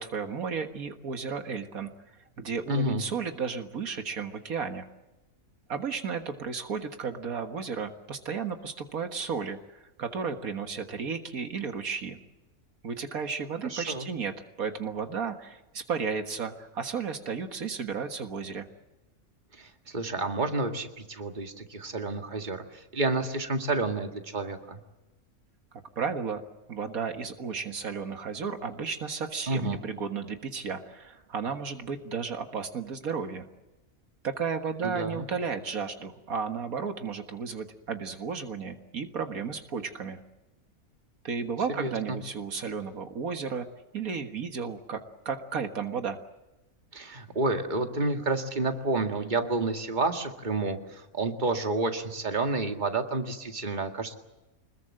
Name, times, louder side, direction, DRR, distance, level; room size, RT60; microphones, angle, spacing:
voice 1, 0.0-1.9 2.4-4.9 5.7-12.2 12.8-18.7 26.0-26.4 26.7-33.5 34.2-40.2 41.2-43.7 43.9-46.2, right 5 dB, 80° right, 7 dB, 2.0 m, -33 dB
voice 2, 2.7-3.0 13.6-14.1 19.6-24.8 29.5-29.8 34.8-35.3 41.8-42.2 46.9-54.1, right 2 dB, 35° right, 5 dB, 2.1 m, -30 dB
25.5 x 21.0 x 7.6 m, 1.0 s
omnidirectional pair, 1.5 m